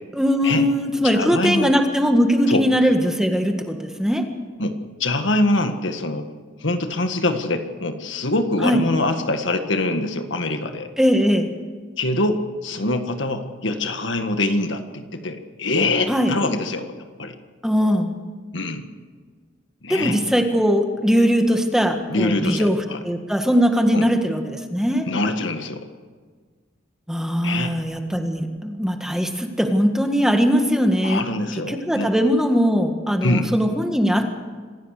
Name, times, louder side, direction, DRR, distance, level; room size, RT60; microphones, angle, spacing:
voice 1, 0.2-4.2 8.6-8.8 11.0-11.5 16.1-16.3 17.6-18.1 19.9-22.8 23.0-25.0 27.1-31.2 31.7-34.4, equal, 5° right, 5 dB, 1.7 m, -20 dB
voice 2, 1.1-1.7 2.5-2.6 4.6-6.3 6.6-10.9 12.0-17.4 18.5-18.9 19.8-20.2 22.1-23.0 23.9-24.1 25.1-25.8 27.4-27.8 31.0-32.1 33.2-33.5, left 2 dB, 65° left, 7 dB, 1.8 m, -24 dB
26.0 x 16.0 x 6.7 m, 1.5 s
head